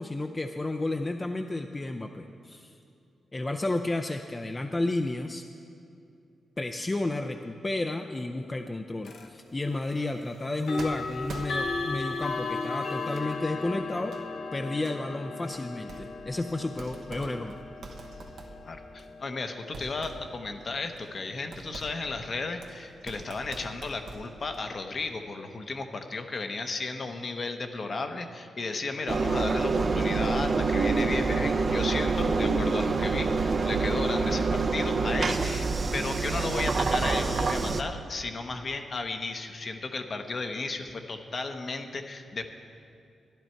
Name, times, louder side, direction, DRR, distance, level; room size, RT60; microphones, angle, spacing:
voice 1, 0.0-2.8 3.3-5.4 6.6-14.1 14.5-17.6, left 2 dB, 25° left, 5 dB, 0.5 m, -32 dB
sound 1, 9.0-9.3 10.6-21.4, left 4 dB, 75° left, 1.0 m, -37 dB
sound 2, 10.8-12.0 12.7-13.4 14.0-14.2 14.9-15.0 15.5-16.4 16.7-19.3 19.7-24.7, right 3 dB, 75° right, 1.1 m, -45 dB
voice 2, 18.6-35.7 35.9-42.5, left 3 dB, 50° left, 6 dB, 0.8 m, -34 dB
Engine, 29.1-37.8, right 4 dB, 50° right, 0.6 m, -26 dB
12.5 x 10.5 x 4.5 m, 2.6 s
cardioid pair, 75°, 0 cm